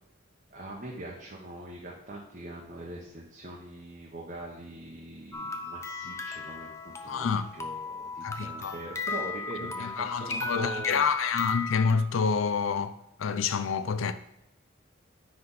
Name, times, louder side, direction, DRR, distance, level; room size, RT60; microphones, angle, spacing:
voice 1, 0.5-11.0, right 1 dB, 40° right, 0.9 m, -42 dB
sound 1, 5.3-11.9, left 3 dB, 15° left, 0.5 m, -36 dB
voice 2, 7.1-7.5 8.2-8.8 9.8-14.1, left 6 dB, 85° left, 0.4 m, -28 dB
9.6 x 3.4 x 4.0 m
head